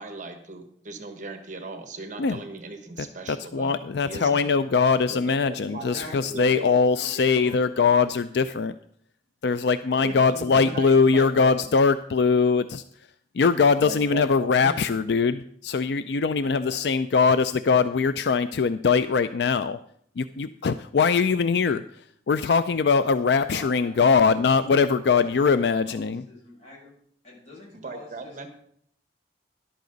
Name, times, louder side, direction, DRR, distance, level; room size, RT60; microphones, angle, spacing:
voice 1, 0.0-4.5 5.1-6.8 9.9-10.4 10.6-11.7 13.8-14.7 27.7-28.5, right 2 dB, 45° right, 7 dB, 1.3 m, -38 dB
voice 2, 3.0-8.8 9.4-13.1 13.3-19.8 20.2-26.2, left 5 dB, 70° left, 12 dB, 0.4 m, -22 dB
voice 3, 5.7-6.7 6.9-7.8 10.6-10.7 15.7-15.8 16.7-16.8 23.4-24.4 25.1-25.5 25.9-26.9 27.2-28.5, left 1 dB, 40° left, -4 dB, 6.6 m, -45 dB
13.5 x 11.5 x 4.0 m, 0.66 s
head